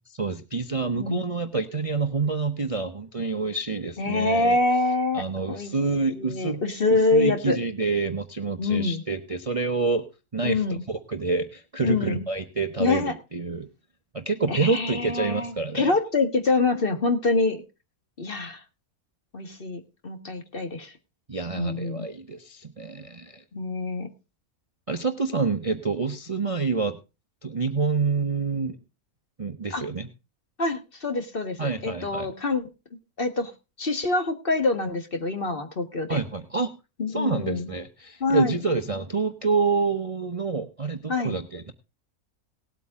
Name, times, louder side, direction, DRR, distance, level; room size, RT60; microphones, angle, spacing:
voice 1, 0.2-4.6 5.1-6.6 6.9-10.0 10.3-13.7 14.1-15.9 21.3-23.4 24.9-27.0 27.4-28.8 29.4-30.1 31.6-32.3 36.1-36.7 37.1-41.7, right 4 dB, 30° right, 8 dB, 0.7 m, -27 dB
voice 2, 4.0-5.7 6.1-7.6 8.6-9.0 10.4-10.8 11.8-12.3 12.8-13.1 14.5-17.6 18.2-18.6 19.3-20.9 21.5-22.1 23.5-24.1 29.7-29.8 30.6-32.6 33.2-33.5 33.8-36.2 37.0-37.7 38.2-38.6 41.1-41.4, left 3 dB, 40° left, 7 dB, 1.6 m, -25 dB
18.5 x 8.5 x 3.6 m, 0.29 s
omnidirectional pair, 1.6 m